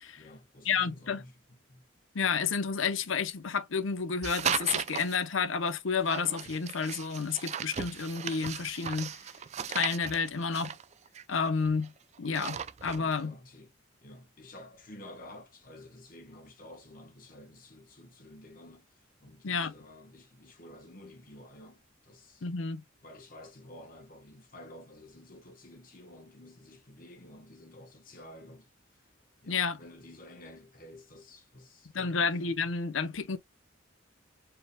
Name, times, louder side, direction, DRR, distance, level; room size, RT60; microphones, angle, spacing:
voice 1, 0.1-1.4 1.7-1.8 12.9-13.7 14.0-22.5 23.0-29.1 29.4-32.4, left 1 dB, 45° left, 1.2 m, -51 dB
voice 2, 0.6-1.2 2.1-9.2 9.7-10.8 11.3-11.9 12.2-13.3 19.4-19.7 22.4-22.8 29.5-29.8 31.9-33.4, left 5 dB, 80° left, 0.8 m, -30 dB
sound 1, 4.2-5.2 6.1-11.9 12.2-13.2, right 8 dB, 35° right, 0.4 m, -36 dB
4.8 x 3.4 x 2.2 m
head